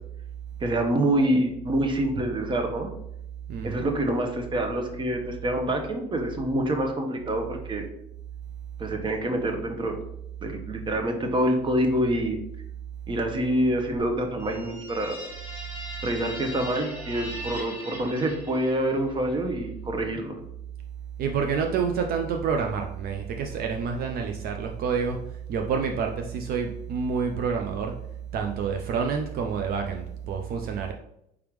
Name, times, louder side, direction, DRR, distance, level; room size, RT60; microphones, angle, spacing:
voice 1, 0.6-2.9 3.6-7.8 8.8-10.0 10.4-12.4 13.1-15.2 16.0-20.3, right 1 dB, 30° right, 4 dB, 0.9 m, -26 dB
voice 2, 3.5-3.9 21.2-28.0 28.3-30.9, right 6 dB, 65° right, 4 dB, 0.5 m, -28 dB
sound 1, 14.4-19.1, equal, 15° right, 1.5 m, -40 dB
4.8 x 3.5 x 3.1 m, 0.77 s
cardioid pair, 110°, 17 cm